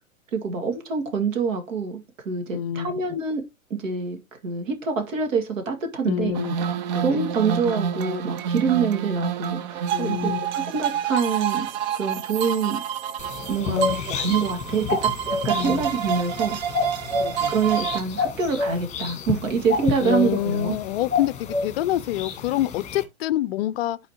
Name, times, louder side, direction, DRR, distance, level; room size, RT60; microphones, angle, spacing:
voice 1, 0.3-3.4 3.7-6.4 7.0-11.7 11.9-12.8 13.5-16.6 17.5-20.7, right 5 dB, 65° right, 2.1 m, -26 dB
voice 2, 2.5-3.0 6.1-6.6 6.9-7.2 9.9-10.4 13.7-14.0 15.5-15.9 17.2-17.5 20.0-24.0, left 14 dB, 45° left, 0.5 m, -27 dB
sound 1, 6.3-18.0, right 8 dB, 35° right, 0.4 m, -28 dB
sound 2, 13.2-23.0, left 5 dB, 15° left, 1.4 m, -30 dB
11.0 x 4.2 x 2.9 m
hypercardioid pair, 120°, 42 cm